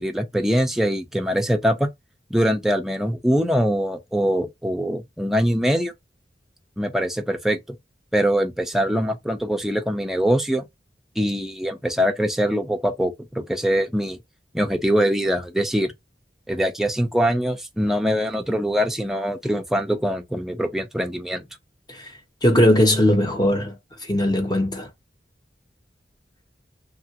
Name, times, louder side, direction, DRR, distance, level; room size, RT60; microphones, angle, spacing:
voice 1, 0.0-1.9 2.3-5.9 6.8-7.6 8.1-10.7 11.2-14.2 14.5-15.9 16.5-21.4, equal, ahead, 0.4 m, -23 dB
voice 2, 22.4-23.7 24.0-24.9, left 1 dB, 25° left, 0.8 m, -19 dB
2.9 x 2.4 x 2.8 m
head